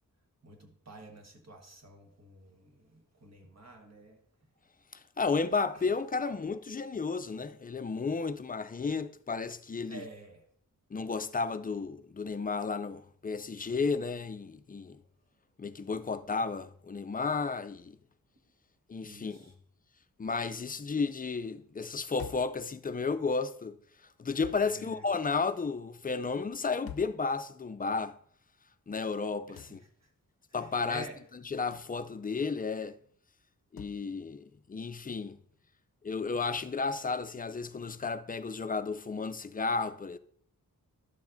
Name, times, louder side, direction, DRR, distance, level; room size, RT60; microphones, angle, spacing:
voice 1, 0.4-4.2 5.7-5.9 9.9-10.5 19.0-19.5 24.6-25.0 29.5-30.1 30.5-31.2, right 2 dB, 50° right, 1.4 m, -49 dB
voice 2, 5.2-10.0 10.9-15.0 15.6-18.0 18.9-19.4 20.2-23.8 24.2-28.2 28.9-29.8 30.5-31.0 31.5-33.0 33.7-35.4 36.0-40.2, left 4 dB, 25° left, 0.4 m, -33 dB
sound 1, 22.2-22.6 24.4-24.7 26.9-27.2 29.6-29.8 31.7-32.0 33.8-34.0, left 11 dB, 80° left, 0.5 m, -46 dB
11.5 x 7.1 x 2.6 m
wide cardioid pair, 105°, 35 cm